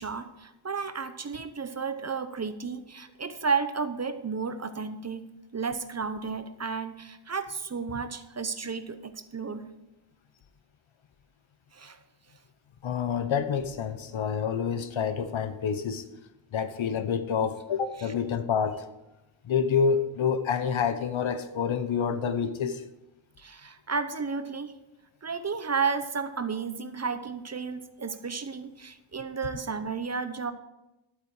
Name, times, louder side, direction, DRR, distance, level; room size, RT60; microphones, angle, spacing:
voice 1, 0.0-9.7 11.7-12.0 18.0-18.1 23.4-24.7 25.2-30.5, right 5 dB, 35° right, 0.8 m, -32 dB
voice 2, 12.8-16.0 16.5-18.8 19.5-22.8, left 6 dB, 85° left, 0.9 m, -28 dB
11.5 x 8.6 x 4.8 m
wide cardioid pair, 95°, 46 cm